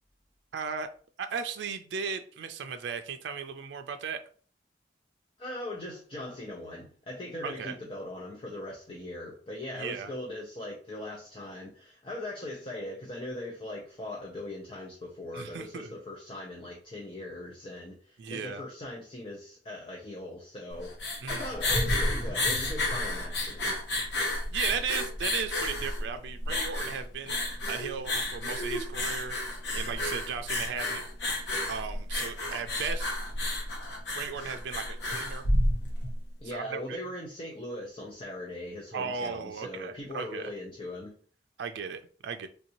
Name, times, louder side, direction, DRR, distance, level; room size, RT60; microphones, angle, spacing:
voice 1, 0.5-0.9 1.2-4.2 7.4-7.8 9.8-10.1 15.3-15.9 18.2-18.6 21.2-21.5 24.1-29.4 29.7-31.0 31.3-33.1 34.1-35.4 36.5-37.0 38.9-40.5 41.6-42.5, right 6 dB, 85° right, 7 dB, 0.4 m, -36 dB
voice 2, 5.4-23.8 36.4-41.1, left 1 dB, 30° left, -2 dB, 0.5 m, -40 dB
sound 1, 20.7-36.2, left 1 dB, 85° left, 0.9 m, -31 dB
3.2 x 2.7 x 2.9 m, 0.43 s
head